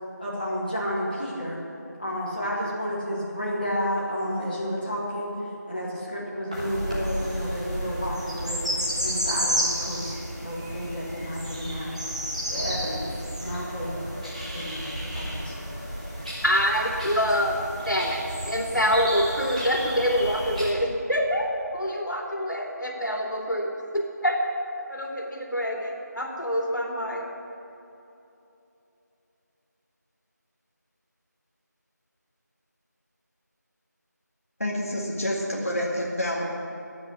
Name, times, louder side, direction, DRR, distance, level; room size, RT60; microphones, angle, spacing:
voice 1, 0.2-1.6 2.0-5.3 5.7-8.6 9.0-10.2 10.4-12.0 12.5-13.9 14.5-15.7, equal, 30° left, -6 dB, 2.1 m, -31 dB
sound 1, 6.5-20.7, equal, 20° right, 1.8 m, -32 dB
voice 2, 16.4-17.6 17.8-21.5 21.7-24.4 24.9-27.3, equal, 90° left, 0 dB, 2.9 m, -26 dB
voice 3, 34.6-36.5, equal, 50° left, -4 dB, 2.1 m, -28 dB
9.5 x 9.3 x 9.9 m, 2.9 s
figure-of-eight pair, 180°, 10 cm